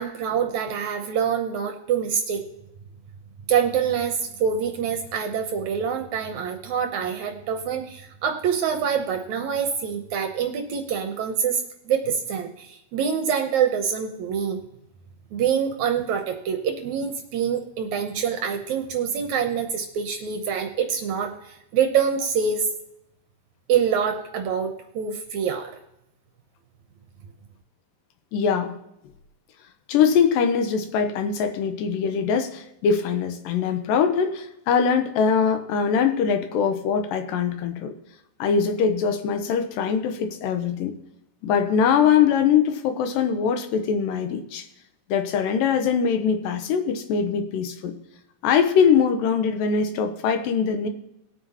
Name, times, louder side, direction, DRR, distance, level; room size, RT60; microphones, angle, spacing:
voice 1, 0.0-2.4 3.5-14.6 15.3-22.7 23.7-25.7, right 7 dB, 70° right, 5 dB, 1.8 m, -25 dB
voice 2, 28.3-28.8 29.9-37.9 38.4-40.9 41.4-44.7 45.1-47.9 48.4-50.9, left 6 dB, 85° left, 8 dB, 2.5 m, -22 dB
20.0 x 8.5 x 2.8 m, 0.85 s
omnidirectional pair, 4.0 m